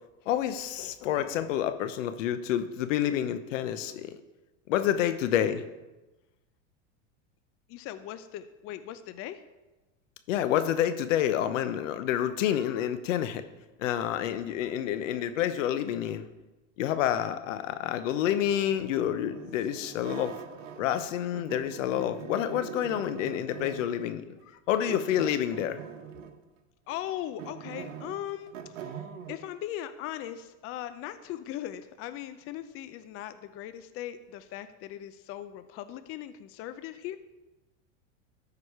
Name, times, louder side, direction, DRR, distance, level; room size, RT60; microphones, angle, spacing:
voice 1, 0.3-4.2 4.7-5.6 10.3-13.4 13.8-16.3 16.8-20.3 20.8-24.2 24.7-25.8, left 10 dB, 80° left, 11 dB, 0.9 m, -28 dB
voice 2, 7.7-9.4 26.9-28.5 28.8-29.0 29.3-37.2, left 12 dB, 35° left, 12 dB, 0.5 m, -39 dB
sound 1, 18.2-21.1 21.3-24.0 24.9-26.4 26.9-29.4, right 8 dB, 85° right, 1.1 m, -43 dB
13.0 x 4.9 x 4.8 m, 1.1 s
supercardioid pair, 120°, 37 cm